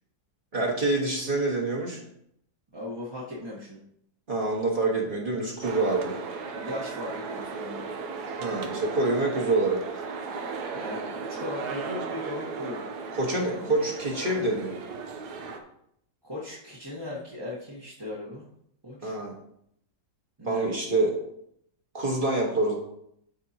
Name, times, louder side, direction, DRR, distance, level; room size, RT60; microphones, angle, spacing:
voice 1, 0.5-2.0 4.3-6.1 8.4-9.8 13.1-14.8 19.0-19.3 20.4-21.2 21.9-22.8, right 2 dB, 30° right, -2 dB, 1.6 m, -26 dB
voice 2, 2.7-3.8 6.5-7.9 10.7-12.8 13.1-13.8 16.2-18.5 18.8-19.2 20.4-20.7, left 1 dB, 15° right, -7 dB, 1.2 m, -38 dB
sound 1, 5.6-15.6, right 4 dB, 70° right, 1.4 m, -36 dB
12.5 x 4.6 x 2.9 m, 0.72 s
omnidirectional pair, 1.8 m